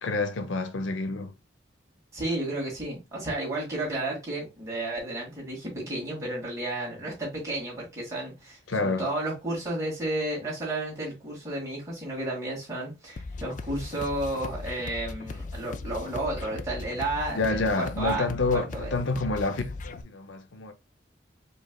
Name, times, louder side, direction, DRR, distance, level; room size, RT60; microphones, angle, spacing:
voice 1, 0.0-1.3 8.7-9.0 17.3-20.7, left 3 dB, 85° left, 0.6 m, -28 dB
voice 2, 2.1-18.2 18.5-18.9, right 2 dB, 15° right, 2.3 m, -32 dB
sound 1, 13.2-20.0, left 3 dB, 40° left, 0.3 m, -38 dB
5.0 x 3.3 x 2.3 m
head